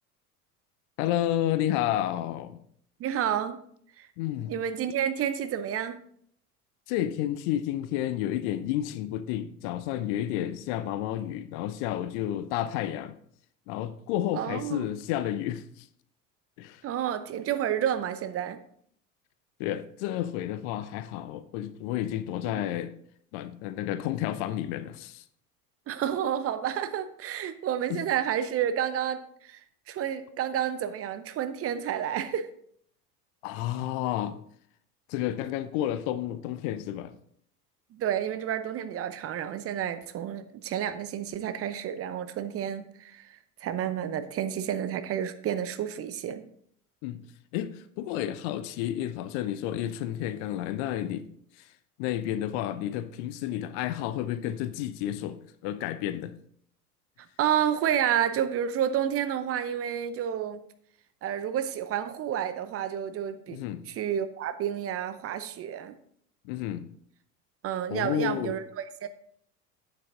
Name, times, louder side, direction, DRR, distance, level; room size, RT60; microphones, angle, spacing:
voice 1, 1.0-2.6 4.2-4.5 6.9-13.2 13.7-15.9 16.6-16.8 19.6-22.9 23.3-25.2 27.9-28.0 33.4-34.4 35.1-37.1 47.0-47.2 47.5-51.3 51.6-51.7 52.0-56.3 63.5-63.8 66.4-66.8 67.9-68.6, left 12 dB, 50° left, 0.7 m, -31 dB
voice 2, 3.0-3.6 4.0-4.1 4.5-6.0 14.3-14.9 16.8-18.6 22.4-22.5 25.9-29.6 29.9-32.5 37.9-46.5 57.4-60.6 61.2-66.0 67.6-69.1, right 9 dB, 30° right, 0.7 m, -30 dB
8.8 x 7.5 x 3.8 m
figure-of-eight pair, 70°, 45 cm